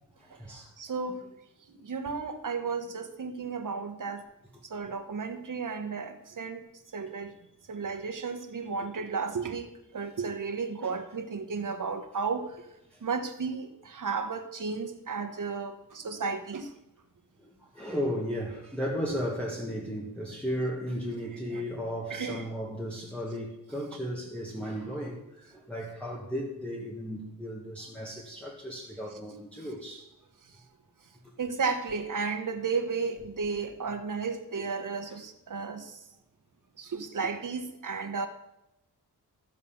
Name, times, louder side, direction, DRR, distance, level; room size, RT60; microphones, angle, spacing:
voice 1, 0.2-0.7 10.8-10.9 12.9-13.0 17.4-30.1, equal, 5° left, 1.5 m, -35 dB
voice 2, 0.8-1.3 1.8-4.2 4.7-6.6 6.9-7.3 7.7-12.6 13.0-16.7 21.5-21.6 22.1-22.4 31.4-36.0 36.8-38.3, right 5 dB, 50° right, 1.2 m, -33 dB
13.5 x 5.4 x 7.1 m
wide cardioid pair, 140°, 40 cm